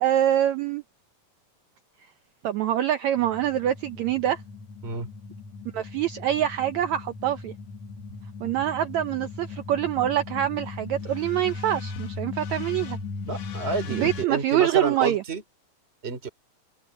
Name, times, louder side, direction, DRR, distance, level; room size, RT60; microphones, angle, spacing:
voice 1, 0.0-0.8 2.4-4.4 5.7-7.5 8.4-13.0 13.9-15.2, right 11 dB, 80° right, 1.6 m, -25 dB
sound 1, 3.2-14.3, left 4 dB, 55° left, 2.7 m, -38 dB
voice 2, 13.3-15.4 16.0-16.3, right 4 dB, 20° right, 3.0 m, -29 dB
open air
omnidirectional pair, 4.1 m